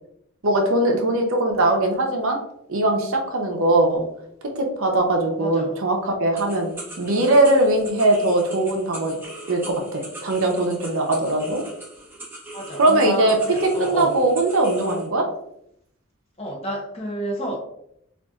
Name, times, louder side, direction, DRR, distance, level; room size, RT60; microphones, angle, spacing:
voice 1, 0.4-2.4 2.7-4.1 4.6-6.7 7.0-9.1 9.5-11.6 12.8-13.4 13.8-15.2, right 2 dB, 70° right, 2 dB, 0.7 m, -20 dB
voice 2, 5.4-5.7 12.5-14.2 16.4-17.6, equal, 25° left, 0 dB, 0.7 m, -29 dB
sound 1, 6.3-15.1, right 1 dB, 10° right, 0.6 m, -40 dB
4.0 x 2.5 x 2.3 m, 0.74 s
head